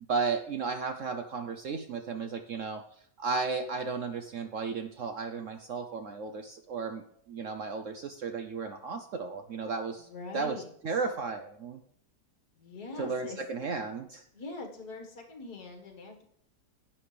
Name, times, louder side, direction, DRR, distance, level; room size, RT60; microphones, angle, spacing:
voice 1, 0.1-2.8 3.2-10.1 10.3-11.8 13.0-14.2, right 4 dB, 60° right, 7 dB, 0.9 m, -34 dB
voice 2, 10.0-10.7 12.6-13.4 14.3-16.2, left 3 dB, 60° left, 3 dB, 2.2 m, -43 dB
10.5 x 8.6 x 3.3 m, 0.68 s
omnidirectional pair, 1.9 m